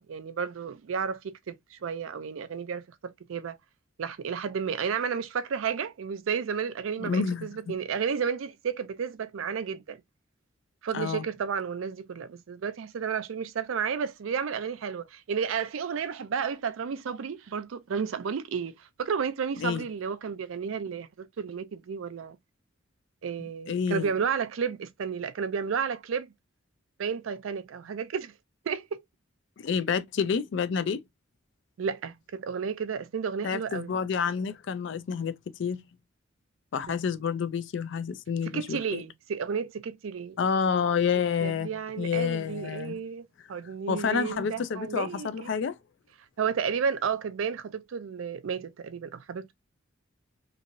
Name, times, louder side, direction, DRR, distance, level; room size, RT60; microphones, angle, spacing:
voice 1, 0.0-3.6 4.0-10.0 10.8-22.4 23.2-26.3 27.0-28.3 28.7-29.0 31.8-33.9 36.9-37.0 38.5-40.4 41.4-45.5 46.4-49.5, right 6 dB, 80° right, 0.4 m, -32 dB
voice 2, 7.0-7.7 10.9-11.2 19.6-19.8 23.7-24.1 29.6-31.0 33.4-35.3 35.6-35.8 36.7-39.0 40.4-41.7 42.0-43.0 43.9-45.8, left 6 dB, 60° left, 0.4 m, -29 dB
3.0 x 2.6 x 2.5 m
head